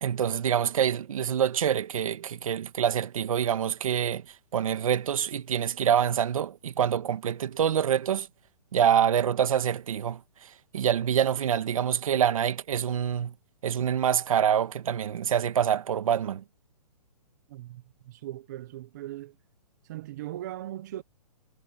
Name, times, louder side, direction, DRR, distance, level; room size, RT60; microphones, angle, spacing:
voice 1, 0.0-4.2 4.5-8.3 8.7-13.3 13.6-16.4, right 9 dB, 55° right, 1.4 m, -26 dB
voice 2, 17.5-19.4 19.8-21.0, right 14 dB, 30° right, 0.7 m, -39 dB
hypercardioid pair, 170°, 20 cm